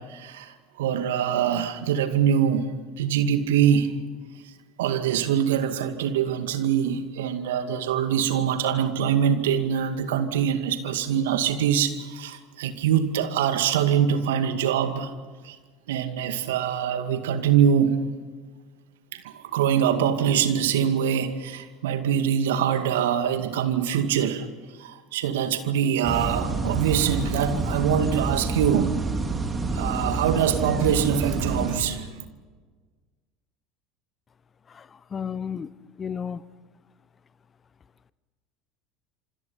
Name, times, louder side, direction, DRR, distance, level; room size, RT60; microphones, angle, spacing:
voice 1, 0.0-4.0 4.8-15.1 15.4-15.6 15.9-18.1 19.1-24.5 24.8-29.0 29.7-32.2, right 8 dB, 70° right, 8 dB, 2.2 m, -24 dB
sound 1, 26.0-31.8, right 3 dB, 25° right, 3.7 m, -28 dB
voice 2, 34.7-35.7 36.0-36.4, left 7 dB, 30° left, 18 dB, 1.1 m, -33 dB
27.0 x 26.0 x 5.8 m, 1.4 s
figure-of-eight pair, 70°, 0 cm